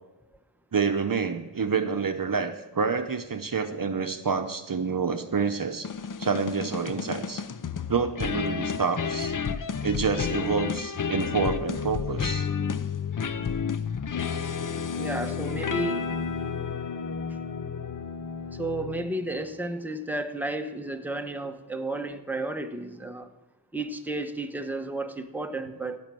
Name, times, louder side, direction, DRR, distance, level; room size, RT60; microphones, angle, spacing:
voice 1, 0.7-5.9 6.2-7.4 7.9-9.3 9.8-12.5 14.3-14.5, right 5 dB, 50° right, 8 dB, 0.8 m, -28 dB
sound 1, 5.8-19.3, left 6 dB, 50° left, 0.6 m, -31 dB
voice 2, 15.0-16.1 18.6-23.3 23.7-26.0, right 2 dB, 5° right, 6 dB, 1.0 m, -32 dB
16.0 x 6.1 x 7.6 m, 1.0 s
wide cardioid pair, 55°, 43 cm